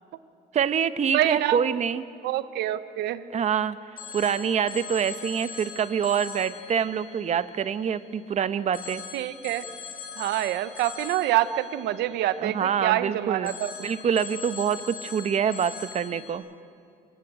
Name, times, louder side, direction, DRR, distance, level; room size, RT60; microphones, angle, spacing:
voice 1, 0.5-2.0 3.3-3.8 4.1-9.0 12.4-13.5 13.8-16.4, right 7 dB, 40° right, 13 dB, 0.9 m, -26 dB
voice 2, 1.1-1.6 2.2-3.3 9.1-9.6 10.2-13.9, right 13 dB, 80° right, 13 dB, 1.0 m, -26 dB
Telephone, 4.0-8.2 8.7-13.0 13.4-16.3, left 6 dB, 60° left, 3.8 m, -42 dB
27.5 x 16.5 x 8.9 m, 2.4 s
cardioid pair, 110°, 17 cm